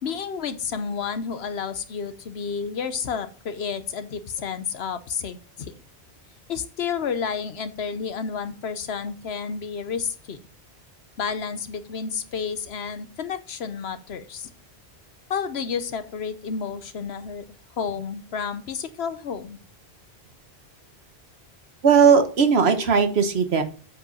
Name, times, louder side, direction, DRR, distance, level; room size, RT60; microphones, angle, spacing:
voice 1, 0.0-5.7 6.5-10.4 11.2-14.5 15.3-17.4 17.8-19.6, left 6 dB, 75° left, 11 dB, 1.1 m, -31 dB
voice 2, 21.8-23.6, right 6 dB, 75° right, 8 dB, 1.4 m, -18 dB
8.1 x 5.0 x 5.5 m, 0.37 s
omnidirectional pair, 1.1 m